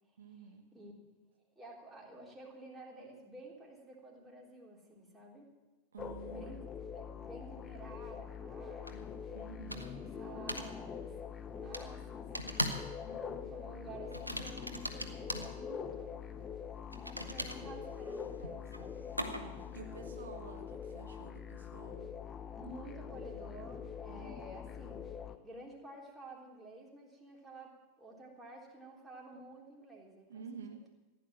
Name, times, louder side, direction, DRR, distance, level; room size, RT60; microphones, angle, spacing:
voice 1, 0.2-0.6 5.9-6.6 9.3-9.9 19.2-22.1 24.1-24.3 30.3-30.8, right 5 dB, 65° right, 4 dB, 1.3 m, -50 dB
voice 2, 1.6-5.5 6.2-6.6 6.9-9.2 9.6-11.1 11.5-12.3 13.0-16.1 17.1-19.1 19.8-20.3 22.6-25.1 25.4-30.9, right 1 dB, 5° right, -3 dB, 3.7 m, -51 dB
sound 1, 6.0-25.4, left 7 dB, 25° left, 0.8 m, -44 dB
sound 2, 8.9-9.0 9.7-10.1 10.5-10.7 11.7-11.9 12.3-12.9 13.2-13.5 14.1-15.5 16.9-19.7, equal, 90° right, 1.2 m, -39 dB
15.0 x 10.5 x 7.3 m, 1.1 s
figure-of-eight pair, 90°, 0 cm